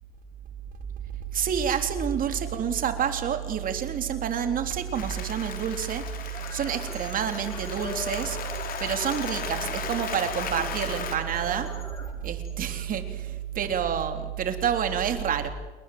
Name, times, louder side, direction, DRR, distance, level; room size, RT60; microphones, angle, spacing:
voice 1, 1.3-8.4 8.8-11.7 12.2-15.5, right 8 dB, 55° right, 7 dB, 3.6 m, -28 dB
Applause, 4.9-11.2, left 7 dB, 55° left, 3.6 m, -36 dB
sound 1, 6.2-13.3, left 1 dB, 15° left, 6.9 m, -43 dB
28.5 x 21.5 x 7.9 m, 1.2 s
cardioid pair, 110°, 17 cm